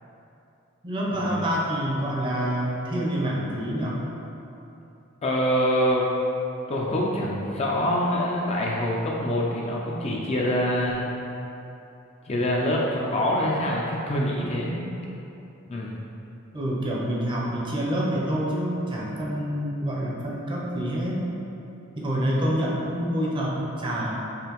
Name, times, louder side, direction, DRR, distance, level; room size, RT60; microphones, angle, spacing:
voice 1, 0.8-4.0 16.5-21.3 22.0-24.1, equal, 25° right, -4 dB, 0.5 m, -27 dB
voice 2, 5.2-6.1 6.7-11.1 12.3-14.8 15.7-16.1, equal, 30° left, -3 dB, 0.3 m, -25 dB
5.0 x 2.6 x 3.0 m, 2.9 s
head